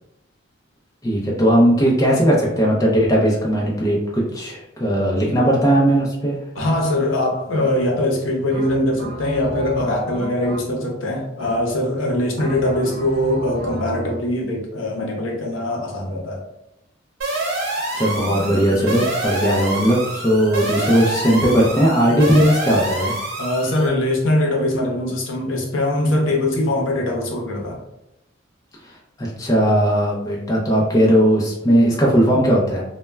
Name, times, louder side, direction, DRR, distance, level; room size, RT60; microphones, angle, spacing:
voice 1, 1.0-6.4 17.9-23.1 28.8-28.9 29.2-32.8, equal, 15° left, -4 dB, 0.4 m, -18 dB
voice 2, 6.5-16.4 23.4-27.8, left 1 dB, 75° left, 0 dB, 0.6 m, -22 dB
sound 1, 6.6-7.1 7.5-8.1 8.5-11.0 11.4-11.9 12.4-14.3, right 1 dB, 50° right, 0.3 m, -33 dB
sound 2, 17.2-23.9, right 2 dB, 80° right, 0.9 m, -26 dB
2.1 x 2.1 x 3.3 m, 0.88 s
head